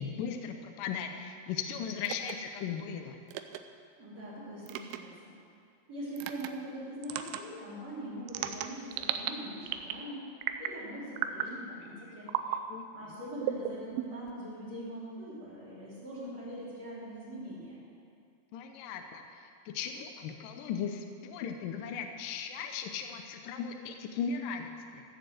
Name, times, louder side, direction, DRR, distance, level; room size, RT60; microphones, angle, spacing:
voice 1, 0.0-3.2 12.2-12.9 18.5-25.0, left 7 dB, 75° left, 5 dB, 2.1 m, -37 dB
sound 1, 2.0-2.3 3.3-3.6 4.7-5.0 6.2-6.5 7.0-7.4 8.3-9.3 9.7-10.0 10.4-10.8 11.2-11.5 12.3-12.6 13.4-14.3, right 12 dB, 85° right, 2.6 m, -34 dB
voice 2, 4.0-5.3 5.9-10.3 10.6-12.3 12.9-17.8, right 1 dB, 40° right, -10 dB, 4.1 m, -42 dB
14.5 x 7.3 x 7.7 m, 2.3 s
omnidirectional pair, 4.5 m